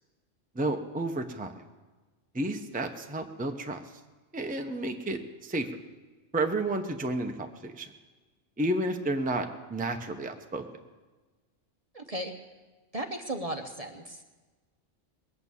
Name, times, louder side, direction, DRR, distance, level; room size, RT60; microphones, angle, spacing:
voice 1, 0.5-1.5 2.3-3.8 4.3-5.7 6.3-7.9 8.6-10.6, right 2 dB, 10° right, 5 dB, 0.8 m, -31 dB
voice 2, 11.9-12.3 12.9-14.2, right 1 dB, 35° right, 5 dB, 0.9 m, -35 dB
21.0 x 8.8 x 7.1 m, 1.3 s
omnidirectional pair, 1.3 m